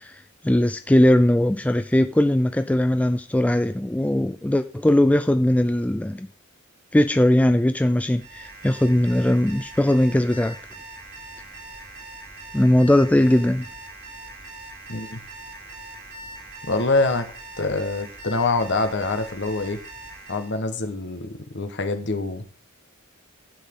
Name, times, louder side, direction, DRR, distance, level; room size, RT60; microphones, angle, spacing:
voice 1, 0.0-6.3 6.9-10.6 12.5-13.7, left 1 dB, 5° left, 9 dB, 0.3 m, -19 dB
Alarm, 8.1-20.6, right 2 dB, 55° right, 5.1 m, -41 dB
voice 2, 14.9-15.2 16.6-17.3 17.6-19.8 20.3-22.4, left 3 dB, 55° left, 8 dB, 1.3 m, -25 dB
11.5 x 8.3 x 3.7 m, 0.43 s
head